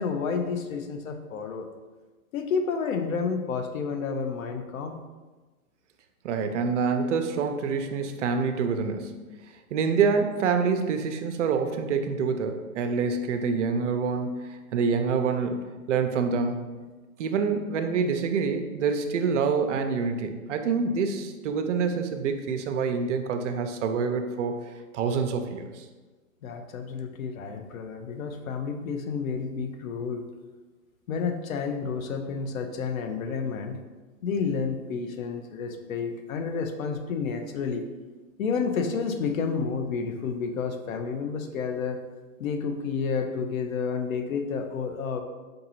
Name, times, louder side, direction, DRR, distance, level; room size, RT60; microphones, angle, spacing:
voice 1, 0.0-1.7 2.3-5.0 26.4-30.3 31.1-33.8 34.2-37.9 38.4-42.0 42.4-45.2, left 5 dB, 65° left, 6 dB, 0.7 m, -30 dB
voice 2, 6.2-9.2 9.7-15.6 15.9-16.6 17.2-24.6 24.9-25.8, right 5 dB, 55° right, 6 dB, 0.5 m, -26 dB
5.2 x 2.6 x 2.9 m, 1.3 s
hypercardioid pair, 140°, 44 cm